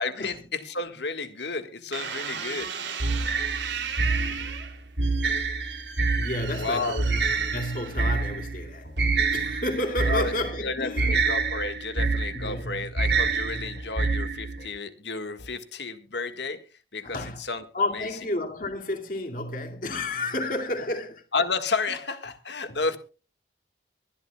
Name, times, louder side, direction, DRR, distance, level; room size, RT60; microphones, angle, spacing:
voice 1, 0.0-2.7 6.5-7.0 10.1-10.3 10.6-16.6 16.9-17.6 17.9-18.1 21.3-23.0, left 4 dB, 75° left, 1.6 m, -31 dB
sound 1, 1.9-8.3 9.0-9.4, right 7 dB, 85° right, 2.9 m, -36 dB
sound 2, 3.0-14.7, right 3 dB, 65° right, 1.8 m, -27 dB
voice 2, 6.2-8.9 9.3-11.2 12.3-12.9 13.5-13.8 17.0-17.4 17.7-21.2 22.7-22.8, left 1 dB, 50° left, 2.3 m, -31 dB
sound 3, 7.2-7.3 8.0-8.2 8.8-9.0 9.4-9.5 10.2-10.3 11.0-11.2 11.6-11.7 12.4-12.5 13.2-13.3 13.7-13.9 14.6-14.7 15.4-15.5, left 1 dB, 90° left, 4.9 m, -45 dB
24.0 x 12.0 x 2.3 m
head